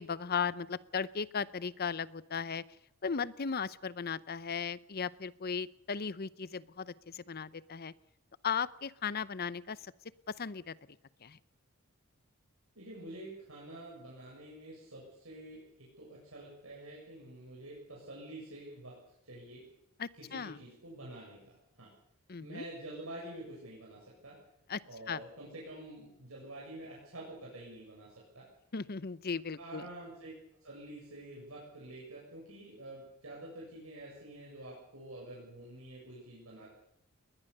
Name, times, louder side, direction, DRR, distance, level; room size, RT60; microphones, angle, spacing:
voice 1, 0.0-2.6 3.0-7.9 8.4-9.9 10.4-10.7 11.2-11.4 20.0-20.6 22.3-22.6 24.7-24.8 25.1-25.2 28.7-29.9, left 6 dB, 45° left, 18 dB, 0.7 m, -36 dB
voice 2, 12.8-15.6 16.0-18.9 19.2-19.6 20.2-21.9 22.4-24.4 24.9-28.1 28.3-28.4 29.6-30.3 30.6-36.8, right 1 dB, 65° right, -4 dB, 7.3 m, -48 dB
21.0 x 20.0 x 6.7 m, 0.81 s
head